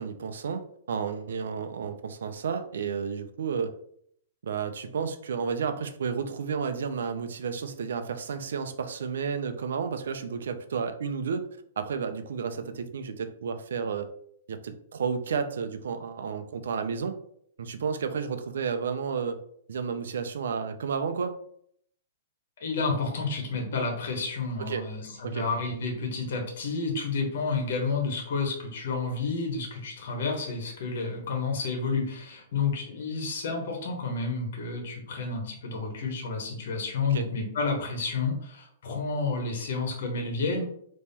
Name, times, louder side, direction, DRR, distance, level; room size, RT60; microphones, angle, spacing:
voice 1, 0.0-3.7 4.4-11.5 11.8-14.1 14.5-17.2 17.6-19.4 19.7-21.4 24.6-24.8 25.2-25.4 37.1-37.3, right 6 dB, 80° right, 9 dB, 0.6 m, -32 dB
voice 2, 22.6-40.6, left 4 dB, 60° left, 1 dB, 1.4 m, -30 dB
4.2 x 3.1 x 3.6 m, 0.66 s
hypercardioid pair, 165°, 0 cm